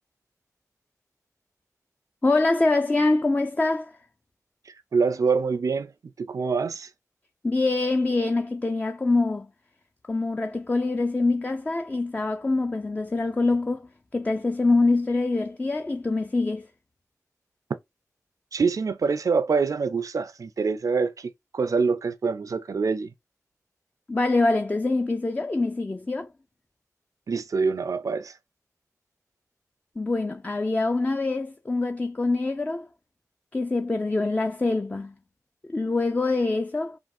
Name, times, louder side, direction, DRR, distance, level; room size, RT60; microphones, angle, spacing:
voice 1, 2.2-4.0 7.4-9.5 10.1-16.7 24.1-26.3 30.0-32.9 33.5-35.1 35.7-37.0, left 3 dB, 25° left, 0.3 m, -24 dB
voice 2, 4.7-5.9 6.2-6.9 18.5-23.1 27.3-28.4, right 5 dB, 65° right, 0.4 m, -25 dB
3.4 x 2.3 x 2.5 m
cardioid pair, 50°, 6 cm